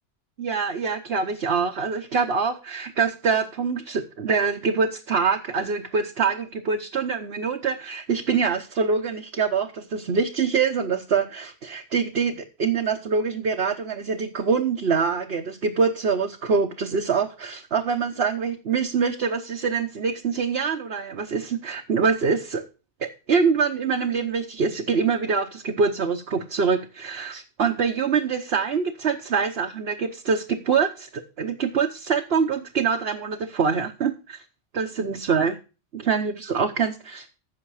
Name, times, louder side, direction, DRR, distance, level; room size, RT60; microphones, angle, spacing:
voice 1, 0.4-22.7 23.0-34.4 34.7-35.5 35.9-37.3, right 5 dB, 60° right, 3 dB, 1.3 m, -25 dB
15.0 x 6.4 x 4.8 m, 0.33 s
omnidirectional pair, 1.2 m